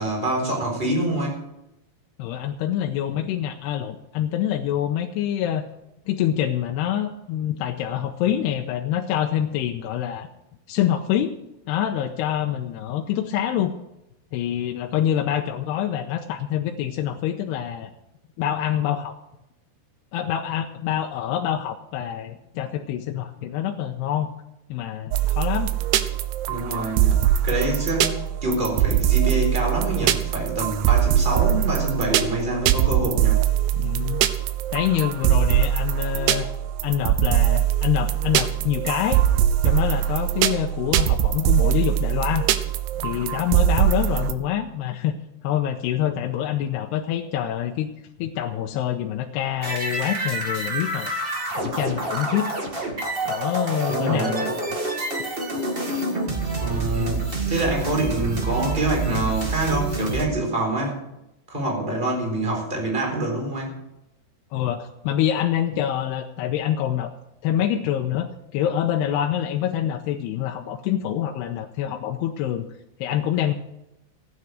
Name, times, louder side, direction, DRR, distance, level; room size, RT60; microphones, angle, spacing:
voice 1, 0.0-1.4 26.5-33.4 53.9-54.5 56.6-61.1 61.5-63.8, right 1 dB, 15° right, 0 dB, 4.0 m, -26 dB
voice 2, 2.2-5.7 6.1-10.3 10.7-11.4 11.7-13.7 14.3-17.9 18.4-19.2 20.1-24.3 24.7-25.7 33.7-34.2 34.7-36.5 36.8-39.2 39.6-42.5 43.0-45.2 45.4-47.9 48.2-51.1 51.5-52.5 53.3-54.5 56.3-56.4 64.5-67.1 67.4-72.7 73.0-73.5, left 10 dB, 85° left, 3 dB, 2.8 m, -26 dB
sound 1, 25.1-44.3, right 11 dB, 85° right, 2.9 m, -22 dB
sound 2, 49.6-60.2, right 2 dB, 50° right, 0.6 m, -27 dB
15.0 x 9.7 x 6.4 m, 0.87 s
omnidirectional pair, 4.8 m